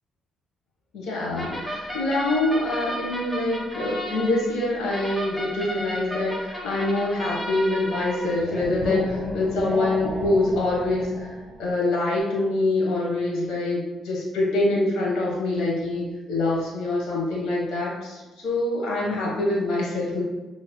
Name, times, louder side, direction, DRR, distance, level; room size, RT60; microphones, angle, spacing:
voice 1, 0.9-20.2, left 2 dB, 85° left, -4 dB, 1.2 m, -25 dB
sound 1, 1.4-11.7, equal, 5° left, 0.9 m, -33 dB
6.0 x 3.0 x 2.2 m, 1.2 s
cardioid pair, 90°, 0 cm